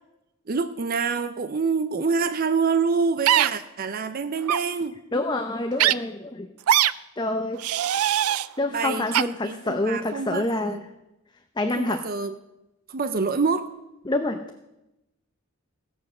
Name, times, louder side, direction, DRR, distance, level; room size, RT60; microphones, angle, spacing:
voice 1, 0.5-5.0 8.7-10.9 11.8-12.3 12.9-13.7, right 5 dB, 45° right, 10 dB, 0.6 m, -26 dB
sound 1, 3.3-3.5 4.4-4.6 5.8-5.9 6.7-6.9 7.6-8.5 9.1-9.2, right 11 dB, 90° right, 0.4 m, -20 dB
voice 2, 5.1-6.5 7.2-8.0 8.6-10.8 11.6-12.1 14.1-14.4, left 2 dB, 20° left, 6 dB, 0.6 m, -27 dB
16.0 x 7.2 x 6.7 m, 0.94 s
head